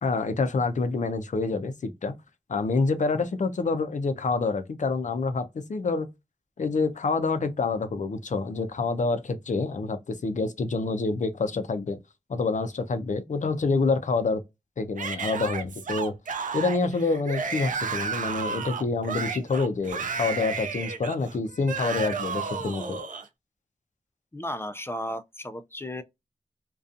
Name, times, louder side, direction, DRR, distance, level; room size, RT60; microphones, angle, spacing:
voice 1, 0.0-2.1 2.5-6.1 6.6-12.0 12.3-14.4 14.8-16.1 16.5-23.0, left 3 dB, 70° left, 0.5 m, -27 dB
Yell / Screaming, 15.0-23.3, right 5 dB, 85° right, 0.4 m, -32 dB
voice 2, 24.3-26.0, equal, 20° left, 0.3 m, -34 dB
2.6 x 2.3 x 2.4 m
wide cardioid pair, 50°, 13 cm